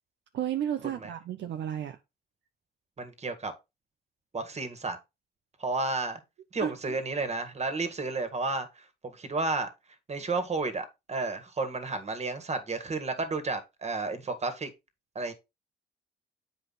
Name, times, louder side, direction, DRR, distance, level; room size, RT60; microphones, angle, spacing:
voice 1, 0.3-2.0 6.6-6.7, right 10 dB, 65° right, 0.8 m, -32 dB
voice 2, 3.0-3.5 4.3-5.0 5.6-6.2 6.5-9.7 10.1-14.7 15.2-15.3, right 3 dB, 35° right, 1.9 m, -32 dB
8.1 x 5.0 x 4.1 m
cardioid pair, 90°, 20 cm